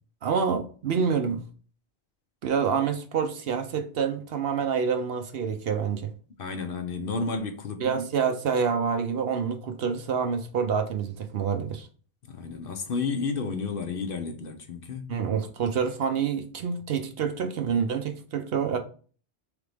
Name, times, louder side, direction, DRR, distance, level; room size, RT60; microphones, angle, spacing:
voice 1, 0.2-1.4 2.4-6.1 7.8-11.9 15.1-18.8, right 6 dB, 65° right, 0.8 m, -27 dB
voice 2, 6.4-7.9 12.3-15.1, left 4 dB, 60° left, 0.7 m, -31 dB
3.9 x 3.4 x 3.3 m
omnidirectional pair, 1.2 m